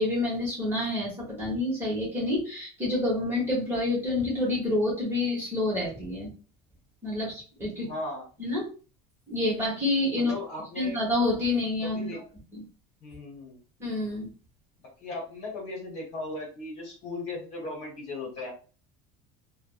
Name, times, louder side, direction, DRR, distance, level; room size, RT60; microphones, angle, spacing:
voice 1, 0.0-6.3 7.0-7.9 8.4-8.6 9.3-10.3 10.8-12.2 12.5-12.6 13.8-14.3, left 2 dB, 15° right, -5 dB, 1.1 m, -28 dB
voice 2, 7.9-8.2 10.2-11.0 11.8-12.2 13.0-13.6 15.0-18.5, left 2 dB, 35° left, -1 dB, 1.1 m, -37 dB
3.3 x 2.1 x 2.3 m, 0.37 s
cardioid pair, 165°, 18 cm